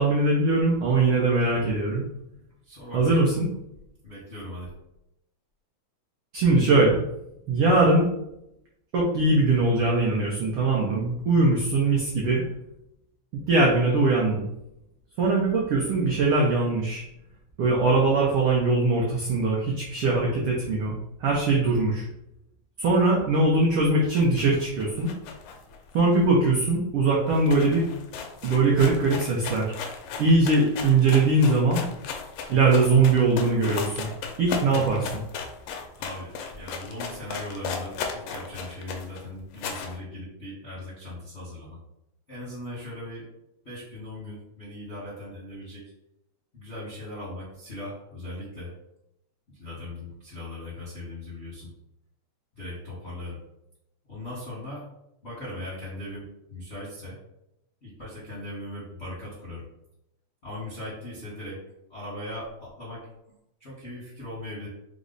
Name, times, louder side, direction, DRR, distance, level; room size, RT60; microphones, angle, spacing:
voice 1, 0.0-2.0 2.9-3.5 6.3-7.0 7.5-8.1 8.9-12.4 13.3-14.4 15.2-17.0 17.6-20.9 21.2-22.0 22.8-25.1 25.9-27.8 28.4-29.7 30.2-31.8 32.5-34.1 34.4-35.0, right 3 dB, 85° right, -3 dB, 1.2 m, -21 dB
voice 2, 2.6-3.2 4.0-4.7 34.7-35.2 35.6-35.7 35.9-41.8 42.3-43.2 43.6-45.8 46.5-48.7 49.5-51.7 52.6-53.4 54.1-54.9 55.2-57.2 57.8-59.6 60.4-61.6 61.9-63.0 63.6-64.7, left 1 dB, 55° left, -8 dB, 0.7 m, -39 dB
sound 1, 24.1-26.7 27.0-27.1 27.3-40.0, left 5 dB, 80° left, 1.4 m, -36 dB
4.7 x 2.1 x 3.8 m, 0.82 s
omnidirectional pair, 3.3 m